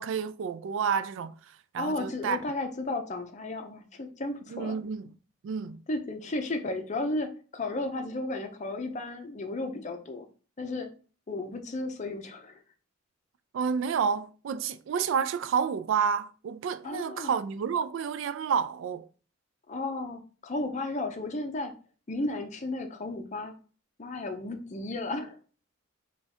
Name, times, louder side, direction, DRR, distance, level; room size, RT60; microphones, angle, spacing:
voice 1, 0.0-2.4 4.5-5.2 5.4-5.8 13.5-19.1, right 6 dB, 65° right, 0.3 m, -30 dB
voice 2, 1.8-4.8 5.9-10.3 10.6-10.9 11.3-12.6 16.8-17.3 19.7-21.7 22.1-23.5 24.0-25.4, left 2 dB, 35° left, 0.6 m, -34 dB
3.5 x 2.4 x 4.2 m
head